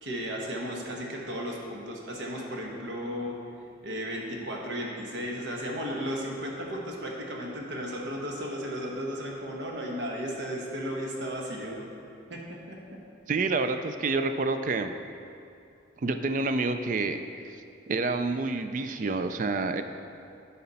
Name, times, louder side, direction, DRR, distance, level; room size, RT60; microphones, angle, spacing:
voice 1, 0.0-3.3 3.8-11.8 12.3-13.0, equal, 70° right, -1 dB, 1.2 m, -35 dB
voice 2, 13.3-14.9 16.0-17.2 17.9-19.8, right 3 dB, 40° right, 8 dB, 0.3 m, -28 dB
10.5 x 4.2 x 4.1 m, 2.6 s
head